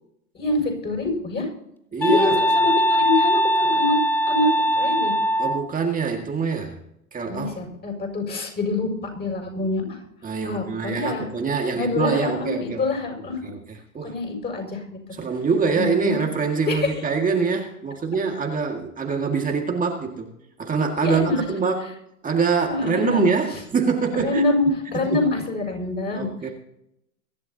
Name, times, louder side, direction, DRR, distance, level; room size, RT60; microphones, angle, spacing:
voice 1, 0.3-1.5 2.0-4.0 4.3-4.5 4.7-5.1 7.3-8.9 9.2-10.0 10.4-11.3 11.7-13.5 14.0-15.0 15.7-16.2 16.6-16.9 21.0-21.4 22.7-23.6 24.1-26.3, left 3 dB, 20° left, 1 dB, 6.8 m, -25 dB
voice 2, 1.9-2.4 5.4-6.8 7.1-7.6 10.2-12.8 13.4-14.2 15.1-20.3 20.6-21.9 22.2-24.5 25.1-25.2 26.1-26.5, right 5 dB, 20° right, 2 dB, 2.1 m, -24 dB
sound 1, 2.0-5.6, equal, 5° left, 0.5 m, -21 dB
24.0 x 12.0 x 2.9 m, 0.77 s
hypercardioid pair, 105°, 43 cm